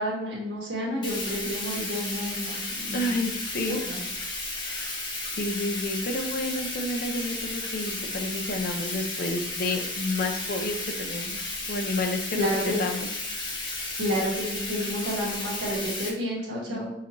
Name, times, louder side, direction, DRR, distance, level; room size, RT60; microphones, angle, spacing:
voice 1, 0.0-3.1 3.8-4.0 12.3-12.8 14.0-16.9, equal, 75° right, -5 dB, 1.5 m, -30 dB
Bathtub (filling or washing), 1.0-16.1, left 2 dB, 25° left, 0.8 m, -33 dB
voice 2, 2.9-3.8 4.7-13.1 13.5-13.8 16.7-16.8, left 2 dB, 55° left, 4 dB, 0.6 m, -31 dB
5.6 x 2.6 x 3.0 m, 0.87 s
head